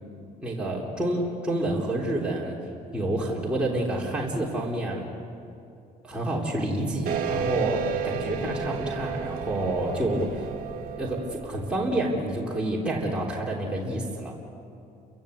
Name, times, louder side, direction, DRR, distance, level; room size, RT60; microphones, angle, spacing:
voice 1, 0.4-2.6 2.9-5.1 6.0-10.5 11.0-14.3, right 1 dB, 5° right, -5 dB, 3.5 m, -28 dB
sound 1, 7.1-12.1, right 6 dB, 55° right, 1.9 m, -32 dB
29.5 x 16.0 x 8.1 m, 2.6 s
cardioid pair, 110°, 17 cm